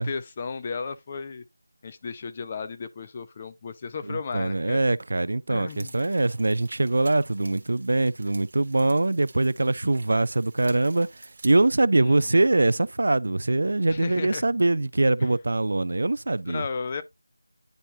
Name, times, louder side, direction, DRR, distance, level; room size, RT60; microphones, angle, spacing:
voice 1, 0.0-1.4 1.8-4.8 5.5-5.9 12.0-12.4 13.9-14.4 15.2-15.3 16.5-17.0, left 5 dB, 20° left, 0.5 m, -34 dB
voice 2, 4.1-11.1 11.4-16.7, right 2 dB, 55° right, 0.3 m, -23 dB
sound 1, 5.7-11.5, right 3 dB, 35° right, 1.2 m, -49 dB
10.5 x 4.3 x 2.6 m
figure-of-eight pair, 175°, 0 cm